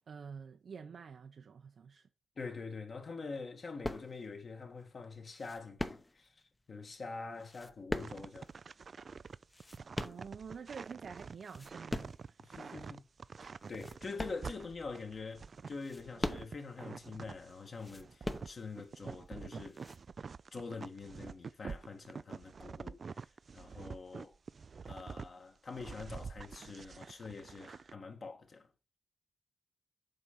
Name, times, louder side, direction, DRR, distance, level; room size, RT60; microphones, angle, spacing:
voice 1, 0.1-2.1 10.0-12.2, right 6 dB, 70° right, 0.7 m, -48 dB
voice 2, 2.4-6.4 6.7-8.5 12.4-13.0 13.4-19.8 20.5-23.3 23.5-24.4 24.8-28.7, left 4 dB, 55° left, 1.8 m, -45 dB
sound 1, 3.8-4.4 5.3-6.4 7.3-8.5 9.3-10.7 11.2-12.3 12.8-12.9 13.6-14.9 15.6-16.8 17.7-18.9 19.7-20.0, left 1 dB, 20° left, 0.8 m, -41 dB
Snow footsteps, 8.0-17.5 17.8-25.3 25.7-27.9, right 5 dB, 55° right, 0.3 m, -47 dB
7.7 x 4.5 x 5.5 m
wide cardioid pair, 105°, 0 cm